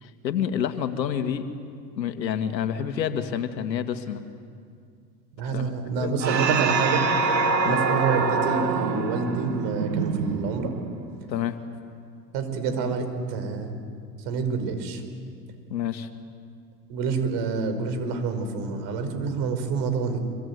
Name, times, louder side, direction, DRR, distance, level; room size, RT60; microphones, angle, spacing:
voice 1, 0.0-1.5 2.0-4.2 5.5-5.7 6.0-6.2 7.6-7.8 11.3-11.6 15.7-16.1, left 9 dB, 80° left, 8 dB, 2.1 m, -28 dB
voice 2, 5.4-7.0 7.6-10.7 12.3-13.7 14.2-15.0 16.9-20.2, right 4 dB, 55° right, 8 dB, 5.2 m, -27 dB
sound 1, 6.2-11.0, right 4 dB, 90° right, 2.1 m, -25 dB
26.0 x 23.5 x 9.6 m, 2.3 s
hypercardioid pair, 100°, 50 cm